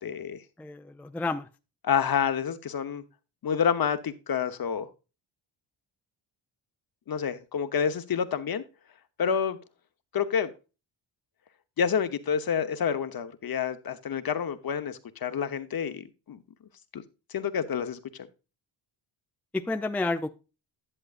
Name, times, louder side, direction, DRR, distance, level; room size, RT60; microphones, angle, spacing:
voice 1, 0.0-0.4 1.8-3.0 3.4-4.9 7.1-8.6 9.2-9.6 10.1-10.5 11.8-16.4 16.9-17.0 17.3-18.0, left 7 dB, 50° left, 1.0 m, -28 dB
voice 2, 0.6-1.5 19.5-20.3, left 2 dB, 5° left, 0.5 m, -30 dB
11.0 x 7.7 x 2.5 m
cardioid pair, 110°, 46 cm